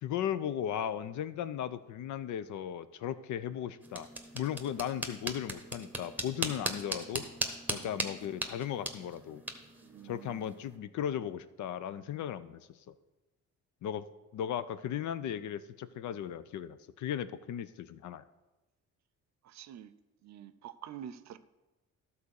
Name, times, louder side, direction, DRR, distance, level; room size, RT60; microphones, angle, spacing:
voice 1, 0.0-4.1 4.3-7.3 7.7-9.4 10.0-12.9 13.8-14.0 14.3-18.2, left 10 dB, 75° left, 14 dB, 0.6 m, -36 dB
sound 1, 3.8-10.8, right 2 dB, 5° right, 1.2 m, -39 dB
voice 2, 9.8-10.5 19.4-19.9 20.2-21.4, right 10 dB, 65° right, 13 dB, 0.6 m, -47 dB
12.0 x 4.2 x 6.4 m, 1.1 s
cardioid pair, 90°, 30 cm